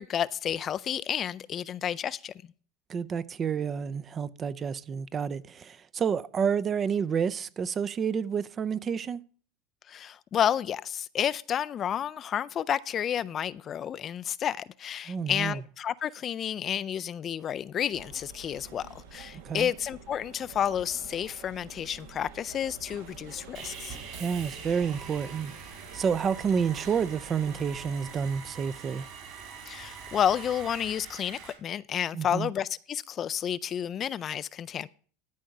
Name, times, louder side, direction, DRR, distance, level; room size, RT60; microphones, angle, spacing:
voice 1, 0.0-2.3 9.9-24.0 29.7-34.9, left 9 dB, 35° left, 0.4 m, -31 dB
voice 2, 2.9-9.2 15.1-15.6 19.4-19.7 24.2-25.5 25.9-29.1 32.1-32.5, right 6 dB, 30° right, 0.5 m, -29 dB
sound 1, 17.9-28.3, right 5 dB, 75° right, 1.5 m, -48 dB
Sawing, 23.5-31.5, right 6 dB, 50° right, 3.7 m, -44 dB
13.0 x 4.6 x 6.5 m
hypercardioid pair, 100°, 0 cm